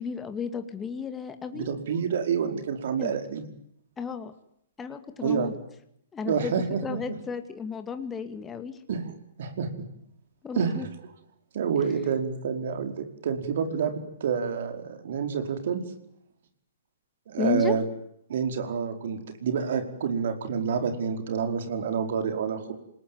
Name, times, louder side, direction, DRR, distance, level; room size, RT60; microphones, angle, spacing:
voice 1, 0.0-1.7 3.0-3.1 4.0-4.3 4.8-5.5 6.1-6.5 6.8-8.8 10.4-10.9 17.4-17.7, left 6 dB, 15° left, 8 dB, 2.3 m, -33 dB
voice 2, 1.5-3.5 5.2-5.5 6.2-7.0 8.9-9.0 9.4-9.7 10.6-10.7 11.5-15.8 17.3-17.8 18.3-22.7, right 6 dB, 55° right, 6 dB, 5.0 m, -28 dB
28.0 x 20.5 x 9.6 m, 0.74 s
figure-of-eight pair, 120°, 0 cm